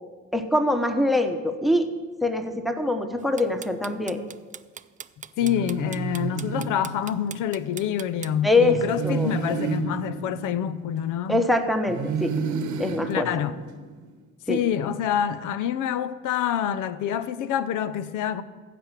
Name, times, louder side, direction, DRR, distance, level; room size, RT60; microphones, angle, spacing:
voice 1, 0.3-1.9 2.2-4.2 8.4-9.3 11.3-12.3 12.8-13.3 14.5-14.6, left 2 dB, ahead, 1.0 m, -23 dB
sound 1, 3.2-8.3, right 7 dB, 25° right, 0.3 m, -39 dB
voice 2, 5.4-11.5 13.1-13.6 14.5-18.4, left 9 dB, 85° left, 0.7 m, -27 dB
sound 2, 5.4-7.5 8.6-11.4 11.9-14.1, right 5 dB, 75° right, 1.0 m, -31 dB
15.0 x 5.2 x 7.4 m
cardioid pair, 90°, 30 cm